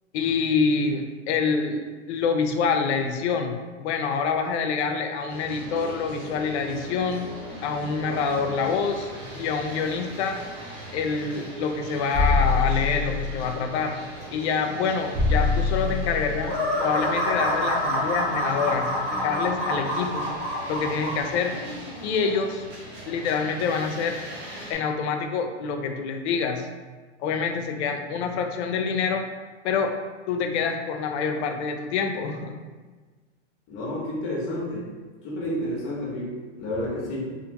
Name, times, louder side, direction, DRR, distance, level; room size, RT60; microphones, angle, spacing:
voice 1, 0.1-7.3 7.6-9.1 9.3-10.4 10.9-13.9 14.3-20.3 20.7-21.5 22.0-22.7 23.0-24.2 24.7-26.7 27.2-29.2 29.6-29.9 30.3-32.6, left 5 dB, 70° left, 5 dB, 0.5 m, -26 dB
sound 1, 5.3-24.7, right 1 dB, 80° right, 1.3 m, -40 dB
sound 2, 12.1-13.6 15.1-16.6, left 4 dB, 10° right, 0.4 m, -24 dB
sound 3, 16.4-21.2, equal, 40° right, 1.1 m, -27 dB
voice 2, 33.7-34.9 35.2-37.4, left 1 dB, 35° left, -3 dB, 0.7 m, -30 dB
2.5 x 2.5 x 2.8 m, 1.4 s
hypercardioid pair, 130°, 35 cm